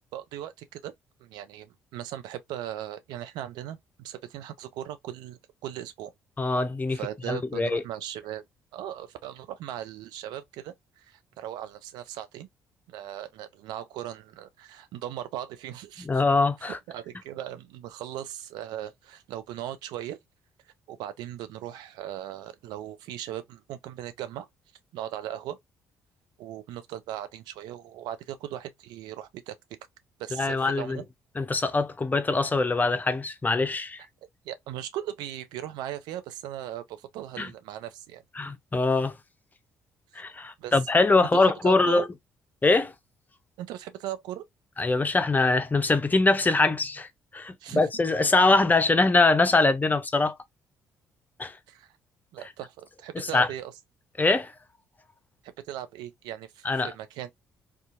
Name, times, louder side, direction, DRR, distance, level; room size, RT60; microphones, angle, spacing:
voice 1, 0.1-0.9 1.2-6.1 6.9-8.4 8.7-10.7 11.0-12.5 12.9-16.2 16.7-20.2 20.9-24.5 24.9-25.6 26.4-29.6 30.2-31.0 34.4-38.2 40.6-40.8 41.2-42.1 43.6-44.4 47.6-47.8 51.7-51.9 52.3-53.7 55.7-57.3, right 12 dB, 70° right, 0.4 m, -38 dB
voice 2, 6.4-7.0 7.3-7.8 16.0-16.8 30.4-31.0 31.4-34.0 37.4-37.5 38.4-39.1 40.2-42.0 42.6-42.9 44.8-50.3 51.4-51.5 53.2-53.5 54.2-54.5 56.6-56.9, left 3 dB, 25° left, 0.6 m, -23 dB
2.6 x 2.4 x 2.4 m
hypercardioid pair, 50°, 8 cm